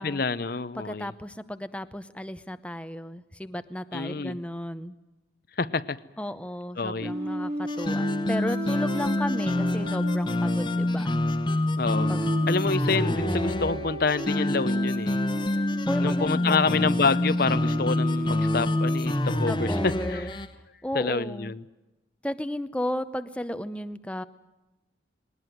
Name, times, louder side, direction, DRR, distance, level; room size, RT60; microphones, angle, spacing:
voice 1, 0.0-1.1 3.9-4.4 5.6-6.0 6.8-7.1 11.8-12.1 12.5-15.2 16.0-20.3 20.9-21.6, left 4 dB, 50° left, 0.7 m, -27 dB
voice 2, 0.7-4.9 6.2-11.1 12.1-12.3 13.2-13.5 15.9-16.8 19.5-20.4 20.8-21.5 22.2-24.2, left 1 dB, 5° left, 0.7 m, -34 dB
sound 1, 7.0-19.9, equal, 35° right, 3.1 m, -36 dB
sound 2, 7.7-20.5, left 1 dB, 25° left, 1.1 m, -27 dB
20.5 x 19.0 x 9.2 m
head